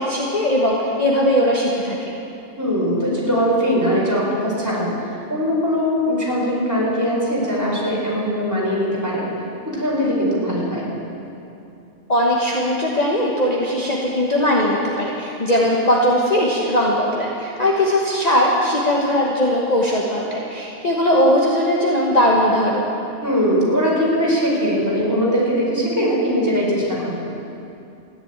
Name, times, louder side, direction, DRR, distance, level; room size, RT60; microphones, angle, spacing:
voice 1, 0.0-2.0 12.1-22.9, equal, 35° left, -3 dB, 1.4 m, -19 dB
voice 2, 2.6-4.9 5.3-9.3 9.6-10.9 15.6-15.7 23.2-27.2, equal, 15° right, -6 dB, 4.4 m, -20 dB
14.0 x 10.5 x 8.8 m, 2.7 s
omnidirectional pair, 1.3 m